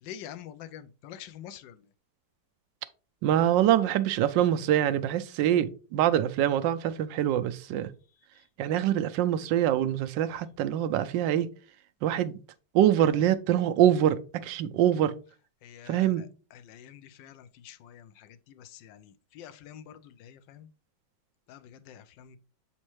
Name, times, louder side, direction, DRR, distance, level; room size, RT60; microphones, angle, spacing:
voice 1, 0.0-1.8 15.6-20.7 21.5-22.4, left 10 dB, 80° left, 1.3 m, -47 dB
voice 2, 3.2-7.9 8.6-11.5 12.0-12.3 12.7-14.1 14.4-15.1 15.9-16.2, right 11 dB, 80° right, 1.3 m, -24 dB
7.2 x 4.3 x 3.0 m
omnidirectional pair, 2.0 m